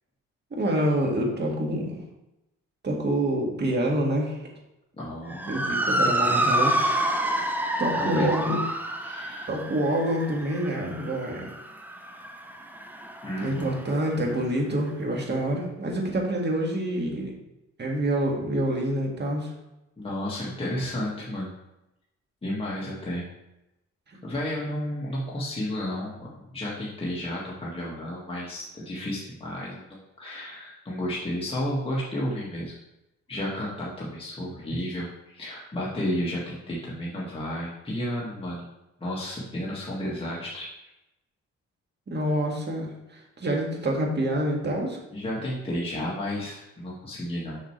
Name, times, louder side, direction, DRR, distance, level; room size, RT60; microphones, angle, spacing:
voice 1, 0.5-2.0 2.8-4.4 5.5-7.1 7.8-8.6 9.5-11.5 13.4-17.3 17.8-19.5 42.1-45.0, right 1 dB, 35° right, 0 dB, 1.9 m, -27 dB
voice 2, 4.9-5.7 8.0-8.6 9.0-9.5 13.2-13.8 20.0-21.5 22.4-23.3 24.2-32.7 33.3-38.7 39.0-40.7 45.1-47.6, left 1 dB, 20° left, -6 dB, 1.8 m, -32 dB
Motor vehicle (road) / Siren, 5.3-13.9, right 1 dB, 5° right, 0.7 m, -28 dB
6.6 x 6.1 x 3.2 m, 0.92 s
cardioid pair, 90°, 30 cm